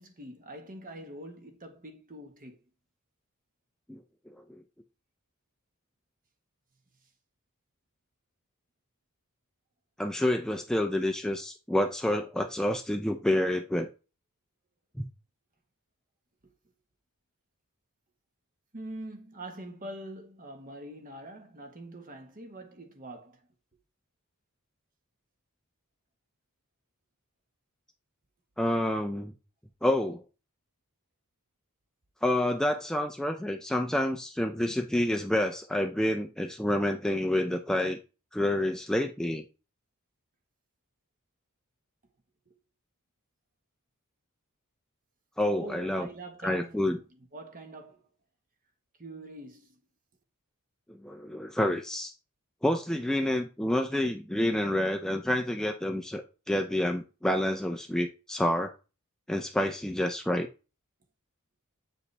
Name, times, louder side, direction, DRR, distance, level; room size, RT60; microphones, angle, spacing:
voice 1, 0.0-2.6 16.4-16.5 18.7-23.5 42.5-42.6 45.5-48.1 49.0-49.8, right 1 dB, 40° right, 1.3 m, -44 dB
voice 2, 3.9-4.6 10.0-13.9 15.0-15.1 28.6-29.3 29.8-30.2 32.2-38.0 38.3-39.4 45.4-46.1 46.4-47.0 50.9-52.1 52.6-58.7 59.3-60.5, left 1 dB, 5° left, 0.4 m, -28 dB
8.1 x 4.9 x 3.3 m
head